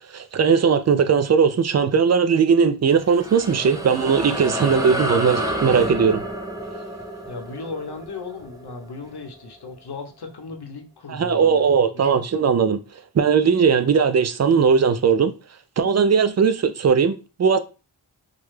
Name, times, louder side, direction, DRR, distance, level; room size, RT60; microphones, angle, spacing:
voice 1, 0.1-6.2 11.1-12.8 13.1-15.3 15.8-17.6, right 6 dB, 40° right, 0.4 m, -18 dB
sound 1, 2.9-9.7, right 1 dB, 10° right, 0.8 m, -30 dB
voice 2, 7.3-11.6 11.9-12.2, left 4 dB, 60° left, 0.8 m, -36 dB
3.0 x 2.2 x 3.2 m
cardioid pair, 45°, 45 cm